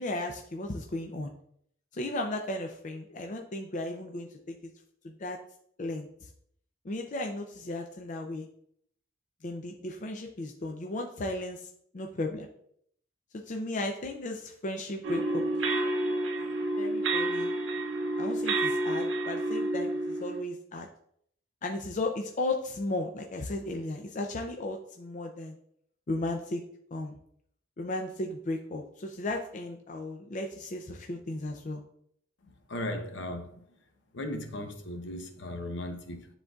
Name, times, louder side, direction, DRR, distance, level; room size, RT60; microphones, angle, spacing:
voice 1, 0.0-1.3 1.9-4.5 5.0-5.4 5.8-6.1 6.8-8.5 9.4-11.6 11.9-12.5 13.3-15.6 16.8-17.5 18.2-20.9 21.6-25.5 26.1-26.6 26.9-27.1 27.8-31.8, left 2 dB, 40° left, 0.5 m, -35 dB
sound 1, 15.0-20.4, right 2 dB, 70° right, 0.7 m, -29 dB
voice 2, 32.4-33.5 34.1-36.3, left 1 dB, 65° left, 0.8 m, -37 dB
10.0 x 3.8 x 2.4 m
head